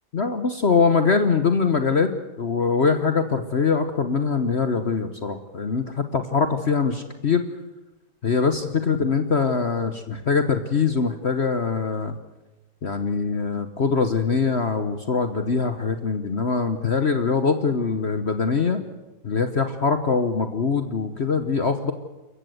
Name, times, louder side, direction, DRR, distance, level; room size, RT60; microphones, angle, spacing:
voice 1, 0.1-2.1 2.4-7.4 8.2-12.1 12.8-18.8 19.2-21.9, left 5 dB, 45° left, 9 dB, 1.2 m, -23 dB
28.0 x 15.0 x 7.9 m, 1.1 s
omnidirectional pair, 1.8 m